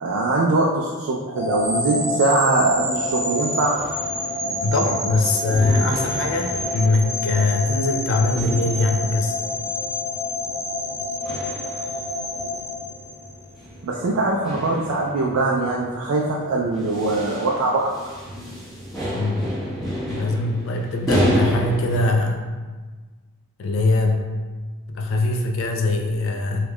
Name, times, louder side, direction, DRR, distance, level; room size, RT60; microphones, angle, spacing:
voice 1, 0.0-3.8 4.4-4.6 13.8-17.9, right 2 dB, 70° right, -2 dB, 0.4 m, -22 dB
sound 1, 1.3-13.5, left 2 dB, 15° right, 1.4 m, -28 dB
sound 2, 2.9-22.1, equal, ahead, 1.1 m, -31 dB
voice 2, 4.6-9.4 19.1-19.5 20.1-22.5 23.6-24.3 24.9-26.7, left 2 dB, 60° left, 2 dB, 0.3 m, -22 dB
3.5 x 2.3 x 3.1 m, 1.4 s
head